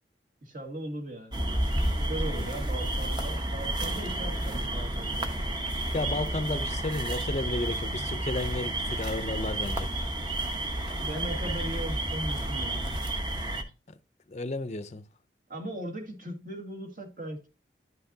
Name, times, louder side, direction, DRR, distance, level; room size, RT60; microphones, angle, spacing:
voice 1, 0.4-1.4 2.0-5.3 11.0-13.1 13.6-13.7 15.5-17.5, right 1 dB, 50° right, 2.0 m, -38 dB
sound 1, 1.3-13.6, right 1 dB, 25° right, 0.9 m, -31 dB
voice 2, 5.9-9.9 10.3-10.5 13.9-14.0 14.3-15.1, left 2 dB, 40° left, 0.5 m, -33 dB
11.0 x 5.8 x 2.8 m
head